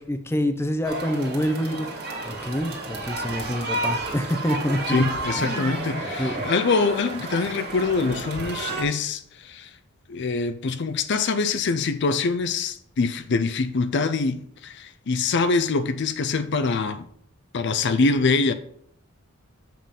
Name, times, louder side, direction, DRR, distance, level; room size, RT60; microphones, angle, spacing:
voice 1, 0.0-5.0 5.4-6.5, equal, 10° left, 0.6 m, -27 dB
sound 1, 0.8-8.8, right 2 dB, 50° right, 1.9 m, -31 dB
sound 2, 3.4-8.4, right 4 dB, 30° right, 1.0 m, -43 dB
voice 2, 4.9-9.8 10.1-17.1 17.5-18.5, left 4 dB, 55° left, 0.5 m, -24 dB
7.5 x 5.8 x 5.2 m
head